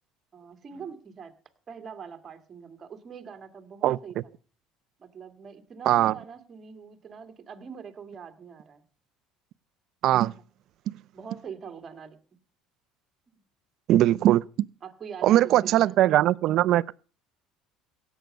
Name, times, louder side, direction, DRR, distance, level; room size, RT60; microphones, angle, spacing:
voice 1, 0.3-1.3 1.7-4.2 5.0-8.8 11.1-12.2 13.3-13.4 14.8-15.9, right 6 dB, 30° right, 2.1 m, -43 dB
voice 2, 10.0-10.3 10.9-11.0 13.9-14.4 15.2-17.0, right 13 dB, 55° right, 0.6 m, -20 dB
17.0 x 8.2 x 6.6 m
cardioid pair, 130°, 0 cm